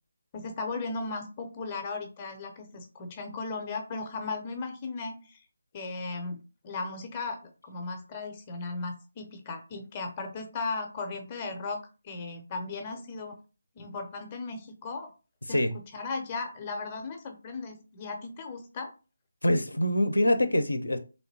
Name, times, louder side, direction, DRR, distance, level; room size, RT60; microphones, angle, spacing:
voice 1, 0.3-5.4 5.7-13.4 13.8-15.1 15.5-15.6 15.9-18.9, left 3 dB, 20° left, 0.5 m, -36 dB
voice 2, 19.4-21.0, left 1 dB, 70° left, 0.5 m, -24 dB
3.2 x 2.7 x 2.7 m
figure-of-eight pair, 155°, 0 cm